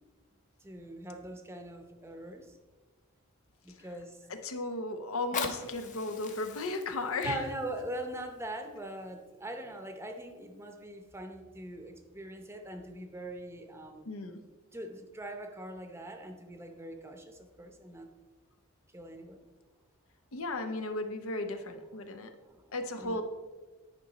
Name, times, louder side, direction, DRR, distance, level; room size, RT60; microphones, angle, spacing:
voice 1, 0.6-2.6 3.6-4.3 5.3-5.6 7.2-14.2 14.7-18.1 18.9-19.4 22.4-23.2, right 1 dB, 10° right, 5 dB, 0.7 m, -42 dB
voice 2, 4.3-7.4 14.1-14.4 20.3-22.3 22.7-23.2, left 2 dB, 80° left, 7 dB, 0.8 m, -35 dB
Fire, 5.1-10.0 10.7-10.8, left 5 dB, 35° left, 0.8 m, -42 dB
10.5 x 5.2 x 4.0 m, 1.3 s
head